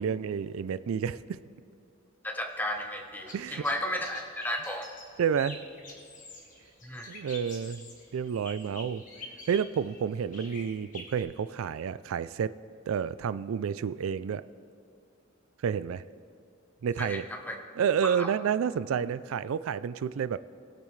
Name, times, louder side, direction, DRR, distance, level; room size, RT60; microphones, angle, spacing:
voice 1, 0.0-1.4 3.3-3.6 5.2-5.6 7.1-7.9 8.1-9.0 9.5-12.5 12.9-14.4 15.6-16.0 16.8-17.3 17.8-20.4, right 7 dB, 85° right, 16 dB, 0.3 m, -30 dB
voice 2, 2.2-4.9 6.8-7.1 17.0-17.6 18.0-18.3, left 1 dB, 10° left, 3 dB, 0.9 m, -34 dB
sound 1, 2.5-11.2, left 2 dB, 40° left, 1.7 m, -47 dB
19.5 x 8.4 x 3.2 m, 2.6 s
head